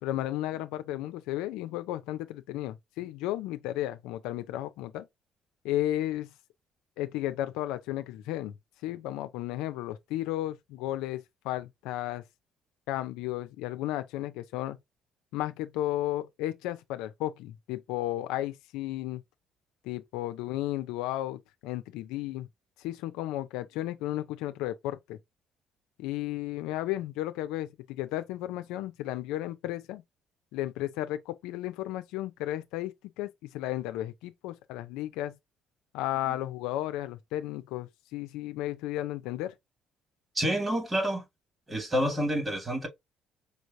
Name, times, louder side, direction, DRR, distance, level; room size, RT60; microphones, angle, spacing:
voice 1, 0.0-5.1 5.6-6.3 7.0-8.5 8.8-12.2 12.9-14.8 15.3-19.2 19.8-22.5 22.8-25.2 26.0-30.0 30.5-35.4 35.9-39.5, left 14 dB, 90° left, 0.6 m, -34 dB
voice 2, 40.4-41.2 41.7-42.9, equal, 20° right, 2.0 m, -28 dB
5.2 x 3.2 x 2.6 m
cardioid pair, 90°, 0 cm